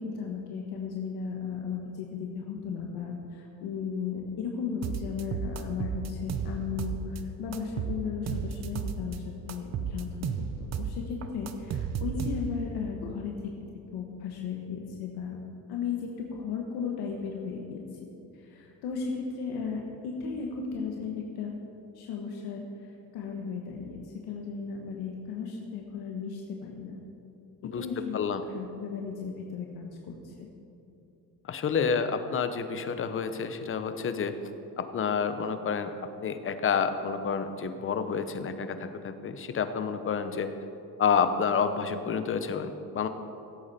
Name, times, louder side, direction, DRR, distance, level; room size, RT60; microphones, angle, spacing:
voice 1, 0.0-15.4 15.7-21.5 21.9-27.0 27.6-30.5, left 6 dB, 80° left, 0 dB, 1.4 m, -36 dB
sound 1, 4.8-7.2 7.5-9.2 9.5-12.7, right 6 dB, 45° right, 0.7 m, -33 dB
voice 2, 31.4-34.4 34.8-35.9 36.2-40.5 41.0-43.1, left 6 dB, 35° left, 10 dB, 0.8 m, -29 dB
16.5 x 8.5 x 4.2 m, 2.9 s
cardioid pair, 120°, 38 cm